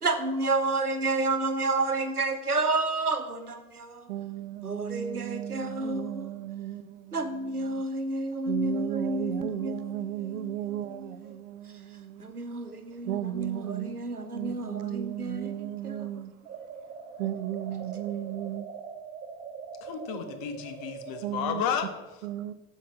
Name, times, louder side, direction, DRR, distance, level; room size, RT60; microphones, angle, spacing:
voice 1, 0.0-4.1 4.6-6.4 7.1-11.4 12.2-16.1, right 2 dB, 90° right, 0.9 m, -31 dB
voice 2, 4.1-7.2 7.7-7.8 8.5-12.3 13.0-14.0 14.3-16.3 17.2-18.6 21.2-21.6 22.2-22.5, right 12 dB, 55° right, 0.8 m, -35 dB
sound 1, 16.4-21.3, right 6 dB, 75° right, 1.2 m, -42 dB
voice 3, 19.8-22.1, left 7 dB, 50° left, 1.5 m, -32 dB
10.5 x 5.8 x 7.1 m
figure-of-eight pair, 65°, 44 cm